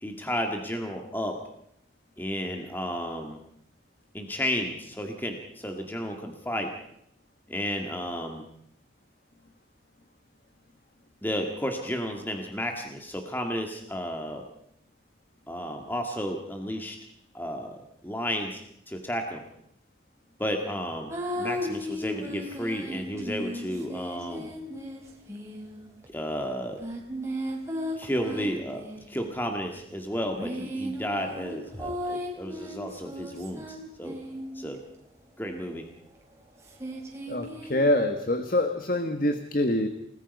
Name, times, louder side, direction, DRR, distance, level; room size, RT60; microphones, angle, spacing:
voice 1, 0.0-1.4 2.2-3.4 4.1-6.7 7.5-8.4 11.2-14.4 15.5-17.0 17.3-17.8 18.0-18.6 18.9-19.4 20.4-24.5 26.1-26.8 28.0-34.2 34.6-34.8 35.4-35.9, equal, 10° left, 3 dB, 2.0 m, -32 dB
sound 1, 21.1-26.1 26.8-29.3 30.1-34.8 36.6-37.9, equal, 15° right, 4.3 m, -36 dB
voice 2, 37.3-39.9, left 1 dB, 45° left, 7 dB, 1.5 m, -25 dB
29.5 x 19.0 x 5.4 m, 0.75 s
head